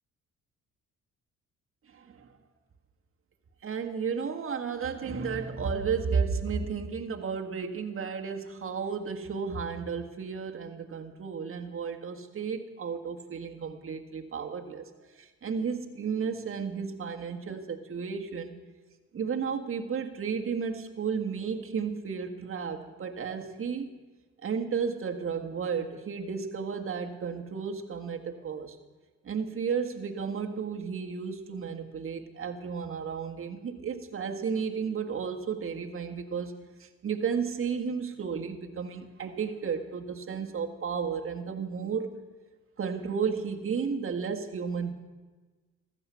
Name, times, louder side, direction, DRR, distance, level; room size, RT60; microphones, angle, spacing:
voice 1, 1.9-2.3 3.6-18.6 19.1-24.0 24.4-28.8 29.2-36.5 36.8-42.1 42.8-44.9, right 6 dB, 45° right, 4 dB, 1.7 m, -33 dB
15.0 x 14.0 x 5.7 m, 1.3 s
cardioid pair, 90°, 30 cm